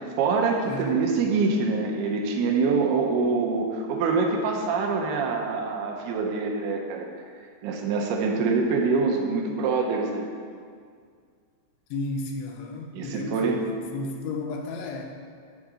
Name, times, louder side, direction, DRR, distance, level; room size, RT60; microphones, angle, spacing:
voice 1, 0.0-7.1 7.6-10.3 12.9-13.7, right 4 dB, 80° right, 0 dB, 2.6 m, -25 dB
voice 2, 0.6-1.0 11.9-15.1, left 3 dB, 85° left, 2 dB, 2.8 m, -33 dB
10.0 x 3.7 x 4.9 m, 2.1 s
omnidirectional pair, 4.8 m